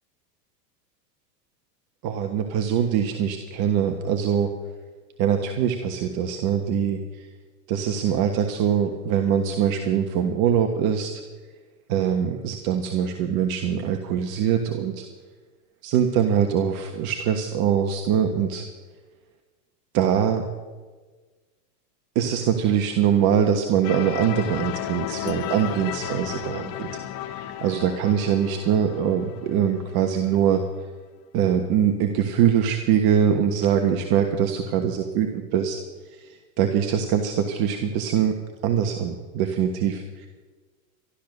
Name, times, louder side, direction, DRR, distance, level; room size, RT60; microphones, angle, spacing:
voice 1, 2.0-4.5 5.2-7.3 7.7-11.1 11.9-15.0 15.8-18.6 19.9-20.4 22.1-26.9 27.2-30.6 31.3-35.8 36.2-38.3 38.6-40.3, right 8 dB, 45° right, 5 dB, 1.4 m, -23 dB
sound 1, 23.8-30.6, left 12 dB, 45° left, 1.0 m, -34 dB
13.5 x 12.5 x 6.7 m, 1.4 s
supercardioid pair, 115°, 49 cm